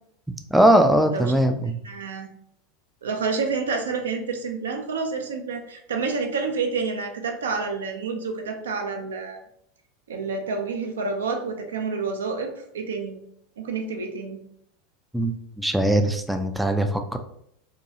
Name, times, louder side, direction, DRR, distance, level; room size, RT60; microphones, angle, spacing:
voice 1, 0.5-1.8 15.1-17.2, right 1 dB, 5° right, 5 dB, 0.3 m, -20 dB
voice 2, 1.8-2.3 3.0-9.4 10.1-13.2 13.6-14.4, right 4 dB, 75° right, 4 dB, 0.4 m, -29 dB
2.8 x 2.2 x 2.7 m, 0.71 s
figure-of-eight pair, 80°, 0 cm